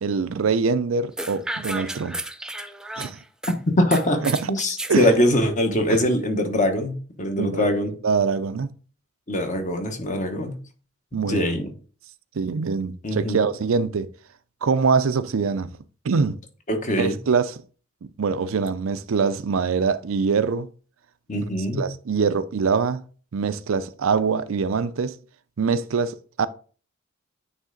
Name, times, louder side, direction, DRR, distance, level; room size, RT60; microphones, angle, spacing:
voice 1, 0.0-2.2 3.0-3.2 4.2-4.4 4.9-5.1 5.9-6.0 7.3-7.7 8.0-8.7 11.1-11.6 12.4-14.1 14.6-15.7 16.0-16.4 17.0-17.6 18.2-20.7 21.7-23.0 23.3-25.2 25.6-26.5, right 5 dB, 85° right, 0.5 m, -23 dB
sound 1, 1.2-3.5 3.9-4.9, right 1 dB, 5° right, 0.3 m, -32 dB
voice 2, 3.7-8.0 9.3-10.6 11.1-11.7 13.0-13.4 16.7-17.2 21.3-21.9, left 1 dB, 40° left, 1.1 m, -23 dB
9.0 x 3.2 x 3.8 m
head